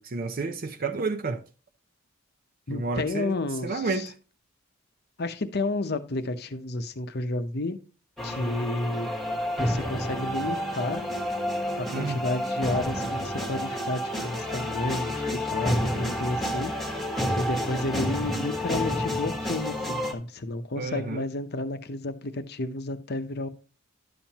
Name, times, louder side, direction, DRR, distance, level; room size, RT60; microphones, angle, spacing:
voice 1, 0.0-1.4 2.7-3.3 3.6-4.1 11.9-12.2 20.8-21.2, right 3 dB, 45° right, 0.6 m, -30 dB
voice 2, 2.7-4.1 5.2-7.8 8.2-9.1 9.6-11.0 11.8-16.7 17.3-23.5, left 2 dB, 50° left, 0.8 m, -31 dB
sound 1, 8.2-20.1, left 1 dB, ahead, 1.3 m, -30 dB
11.0 x 7.2 x 2.9 m
head